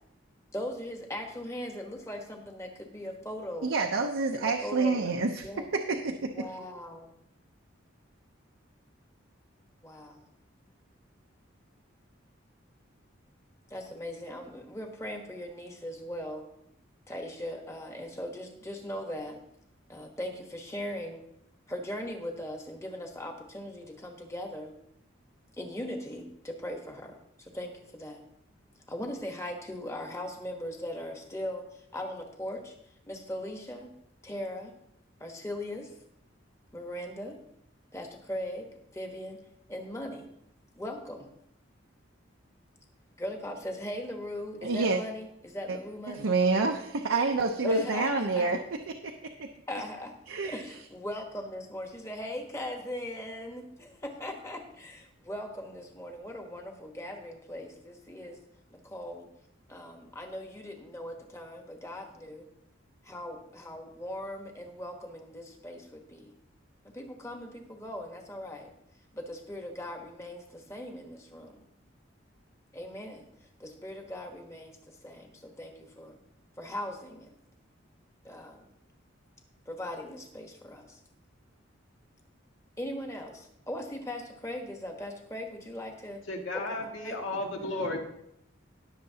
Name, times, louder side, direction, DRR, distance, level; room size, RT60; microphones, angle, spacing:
voice 1, 0.5-3.7 4.3-5.1 5.4-5.7 6.1-7.1 9.8-10.3 13.7-16.5 17.1-19.4 19.9-21.2 21.7-24.7 25.6-28.2 28.9-32.7 33.0-33.9 34.2-34.7 35.2-35.9 36.7-37.4 37.9-39.4 39.7-40.3 40.7-41.3 43.2-46.3 47.6-48.5 49.7-50.1 50.4-58.4 58.7-59.3 59.7-62.5 63.0-66.3 66.8-68.7 69.1-71.6 72.7-73.3 73.6-76.2 76.6-77.3 78.2-78.6 79.7-81.0 82.8-86.2 86.5-87.2, left 1 dB, 15° left, 3 dB, 1.2 m, -39 dB
voice 2, 3.6-6.5 44.6-45.0 45.7-45.8 46.1-48.6 49.0-49.1 49.4-49.5 50.3-50.6, right 3 dB, 80° right, 3 dB, 0.8 m, -28 dB
voice 3, 86.3-88.0, left 2 dB, 75° left, 1 dB, 1.9 m, -33 dB
19.0 x 6.7 x 2.8 m, 0.77 s
head